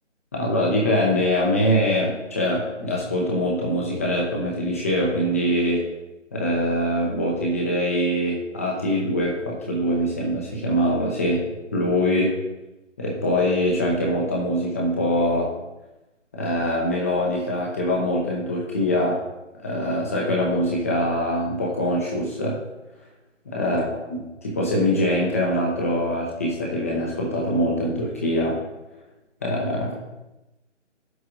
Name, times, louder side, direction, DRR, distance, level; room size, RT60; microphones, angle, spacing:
voice 1, 0.3-5.8 6.3-11.4 11.7-12.3 13.0-15.5 16.3-19.2 19.6-22.6 23.5-28.6 29.4-29.9, equal, 10° left, -2 dB, 0.9 m, -23 dB
10.0 x 8.0 x 3.9 m, 0.99 s
figure-of-eight pair, 155°, 37 cm